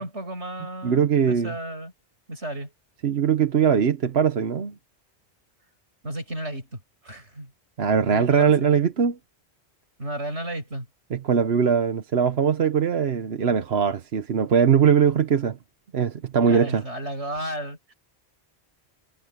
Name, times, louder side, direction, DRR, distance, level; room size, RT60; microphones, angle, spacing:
voice 1, 0.0-1.9 2.3-2.7 6.0-6.8 7.0-7.5 8.1-8.5 10.0-10.9 16.4-17.9, right 1 dB, 90° right, 7.2 m, -33 dB
voice 2, 0.8-1.5 3.0-4.7 7.8-9.2 11.1-15.6 15.9-16.8, right 7 dB, 70° right, 1.2 m, -21 dB
omnidirectional pair, 1.1 m